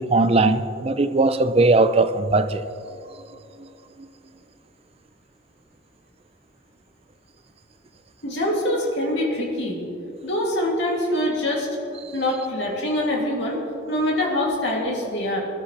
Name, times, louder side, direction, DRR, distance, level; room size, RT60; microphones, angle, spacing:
voice 1, 0.0-2.6, right 3 dB, 30° right, 0.5 m, -19 dB
voice 2, 8.2-9.8 10.2-11.7 12.1-13.6 13.9-15.4, left 1 dB, 65° left, 2.8 m, -24 dB
21.5 x 12.5 x 3.3 m
head